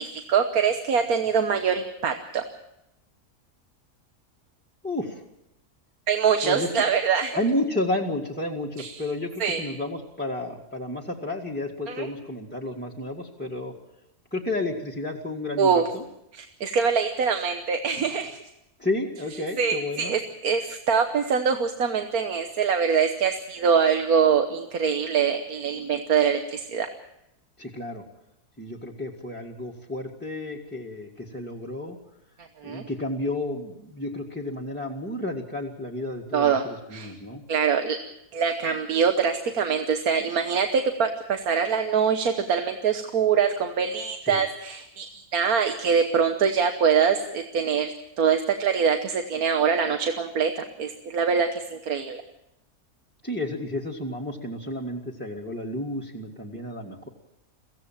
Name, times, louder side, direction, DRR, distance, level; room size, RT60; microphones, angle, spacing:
voice 1, 0.0-2.4 6.1-7.4 8.8-9.0 9.4-9.6 11.9-12.1 15.6-15.9 16.3-18.4 19.6-26.9 32.6-32.8 36.3-36.6 36.9-37.1 37.5-38.0 38.3-52.2, right 6 dB, 75° right, 6 dB, 1.6 m, -24 dB
voice 2, 4.8-5.2 6.4-6.8 7.3-13.7 14.3-16.0 18.8-20.1 27.6-28.0 28.6-32.0 32.6-37.4 44.2-44.4 53.2-57.1, left 1 dB, 5° left, -4 dB, 1.8 m, -31 dB
23.5 x 16.5 x 7.4 m, 0.87 s
omnidirectional pair, 1.6 m